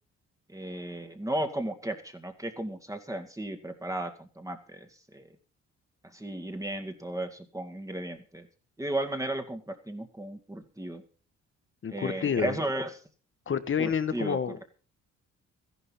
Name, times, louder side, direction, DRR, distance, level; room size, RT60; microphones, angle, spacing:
voice 1, 0.5-5.3 6.1-8.5 8.8-11.0 11.9-12.9 13.8-14.4, right 1 dB, 10° right, 6 dB, 2.2 m, -35 dB
voice 2, 11.8-12.6 13.5-14.6, left 7 dB, 40° left, 12 dB, 1.3 m, -29 dB
14.0 x 11.5 x 5.6 m, 0.38 s
cardioid pair, 90°, 30 cm